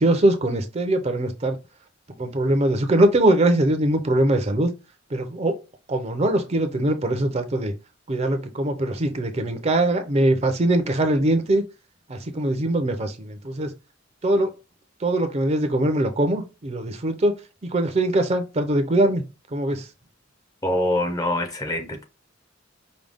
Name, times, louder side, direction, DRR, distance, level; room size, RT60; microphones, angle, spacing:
voice 1, 0.0-1.6 2.2-4.7 5.1-5.5 5.9-7.7 8.1-11.6 12.1-13.7 14.2-14.5 15.0-17.4 17.6-19.2 19.5-19.9, right 1 dB, 35° right, 0.6 m, -22 dB
voice 2, 20.6-22.0, left 1 dB, 20° left, 0.7 m, -24 dB
5.1 x 2.3 x 3.4 m
head